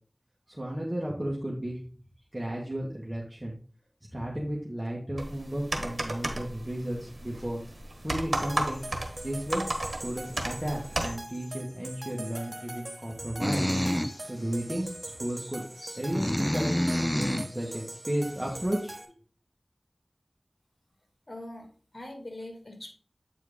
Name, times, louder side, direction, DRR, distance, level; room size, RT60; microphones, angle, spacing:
voice 1, 0.5-1.8 2.3-3.6 4.1-7.6 8.0-8.8 9.2-9.6 10.0-13.7 14.3-15.6 16.0-19.0, right 1 dB, 25° right, -5 dB, 1.8 m, -33 dB
sound 1, 5.2-11.2, right 1 dB, 75° right, 1.3 m, -34 dB
sound 2, 8.3-19.0, right 1 dB, 45° right, 1.2 m, -43 dB
sound 3, 13.4-14.2 14.7-14.8 15.8-17.5, equal, 15° left, 0.4 m, -28 dB
voice 2, 21.3-22.9, left 1 dB, 65° left, 2 dB, 2.1 m, -42 dB
8.4 x 4.5 x 3.7 m, 0.40 s
wide cardioid pair, 50°, 0 cm